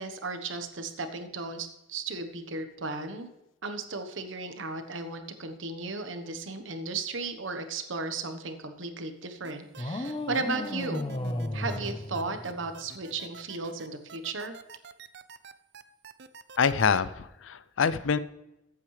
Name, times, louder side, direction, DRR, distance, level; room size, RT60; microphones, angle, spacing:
voice 1, 0.0-3.3 3.6-11.0 11.5-14.5, right 3 dB, 80° right, 8 dB, 1.2 m, -35 dB
sound 1, 9.4-17.0, right 5 dB, 60° right, 0.6 m, -47 dB
sound 2, 9.8-12.9, left 1 dB, 25° left, 0.8 m, -34 dB
voice 2, 16.6-18.2, left 6 dB, 80° left, 15 dB, 0.5 m, -25 dB
14.5 x 8.4 x 3.3 m, 0.93 s
head